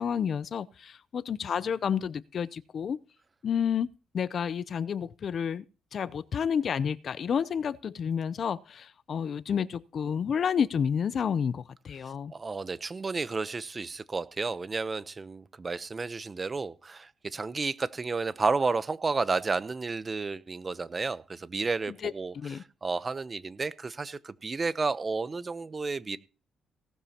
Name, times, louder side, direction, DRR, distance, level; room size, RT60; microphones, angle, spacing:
voice 1, 0.0-3.0 3.4-3.9 4.1-5.6 5.9-12.3 22.0-22.6, left 7 dB, 55° left, 0.5 m, -30 dB
voice 2, 12.3-22.3 22.8-26.2, right 4 dB, 30° right, 0.8 m, -31 dB
18.0 x 12.0 x 2.9 m
cardioid pair, 90°, 0 cm